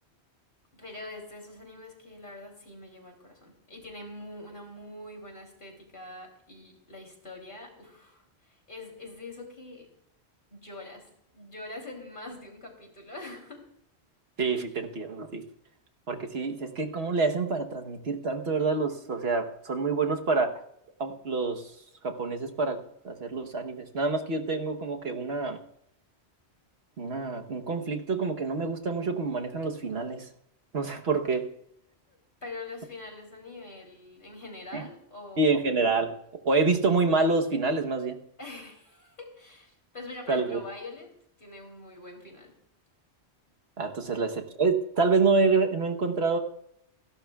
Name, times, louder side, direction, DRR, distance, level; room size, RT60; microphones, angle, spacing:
voice 1, 0.7-9.9 10.5-11.1 11.3-13.6 32.4-35.7 38.4-41.1 41.4-42.5, left 2 dB, 50° left, 1 dB, 3.4 m, -44 dB
voice 2, 14.4-15.4 16.1-20.5 21.0-21.6 22.0-22.8 23.0-25.6 27.0-30.3 30.7-31.4 34.7-34.9 35.4-36.1 36.4-38.2 40.3-40.6 43.8-46.4, right 3 dB, 65° right, 4 dB, 1.3 m, -27 dB
28.5 x 11.5 x 2.3 m, 0.72 s
omnidirectional pair, 1.1 m